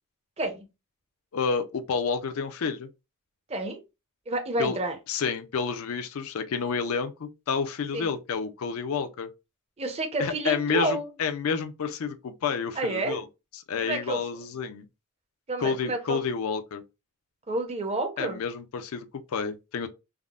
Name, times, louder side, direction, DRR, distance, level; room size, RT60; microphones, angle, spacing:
voice 1, 0.4-0.7 3.5-3.8 4.3-5.0 7.9-8.1 9.8-11.1 12.8-13.2 13.8-14.2 15.5-16.3 17.5-18.4, right 2 dB, 30° right, 0.6 m, -29 dB
voice 2, 1.3-2.9 4.6-4.8 5.1-9.3 10.2-13.2 13.5-14.9 15.6-16.8 18.2-19.9, left 5 dB, 70° left, 0.4 m, -29 dB
3.5 x 2.0 x 2.3 m
head